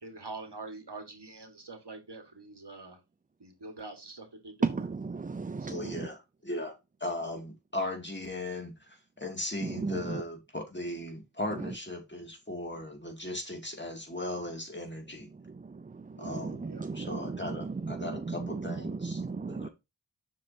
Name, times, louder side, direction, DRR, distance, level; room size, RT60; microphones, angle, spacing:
voice 1, 0.0-3.0 3.4-4.8 5.6-5.8 16.1-16.4 16.6-16.9 17.5-17.6, right 3 dB, 70° right, 1.8 m, -45 dB
voice 2, 4.6-6.1 9.6-10.2 15.9-19.7, right 4 dB, 20° right, 0.4 m, -35 dB
voice 3, 5.7-8.7 9.2-15.3 16.2-16.6 16.9-19.2 19.5-19.7, left 1 dB, 25° left, 2.4 m, -37 dB
7.4 x 6.5 x 2.8 m
wide cardioid pair, 45°, 42 cm